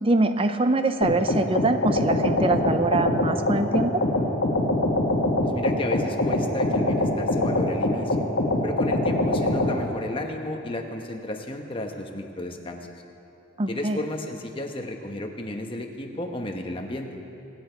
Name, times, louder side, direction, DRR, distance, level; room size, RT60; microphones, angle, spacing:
voice 1, 0.0-3.9 13.6-14.0, right 2 dB, 30° right, 9 dB, 0.5 m, -23 dB
sound 1, 1.0-9.7, left 1 dB, 65° left, 1.7 m, -23 dB
voice 2, 5.4-8.2 8.6-12.8 13.7-17.1, left 1 dB, 25° left, 3 dB, 1.1 m, -33 dB
24.5 x 8.9 x 4.5 m, 2.7 s
head